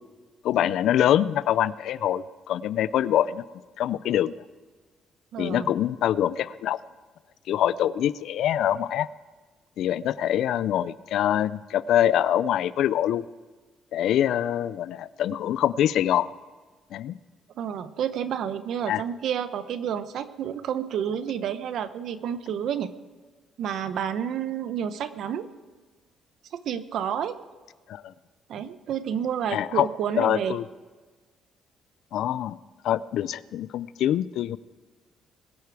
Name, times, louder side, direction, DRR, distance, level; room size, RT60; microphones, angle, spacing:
voice 1, 0.4-3.4 3.8-4.3 5.4-6.8 7.5-9.1 9.8-13.2 13.9-16.3 16.9-17.2 18.9-19.0 27.9-28.0 29.5-29.9 30.2-30.6 32.1-32.6 32.8-34.6, left 11 dB, 65° left, 18 dB, 0.4 m, -24 dB
voice 2, 5.3-5.7 17.6-22.9 23.6-25.5 26.5-27.4 28.5-30.6, right 8 dB, 55° right, 12 dB, 0.8 m, -30 dB
21.5 x 8.3 x 4.7 m, 1.4 s
cardioid pair, 170°, 0 cm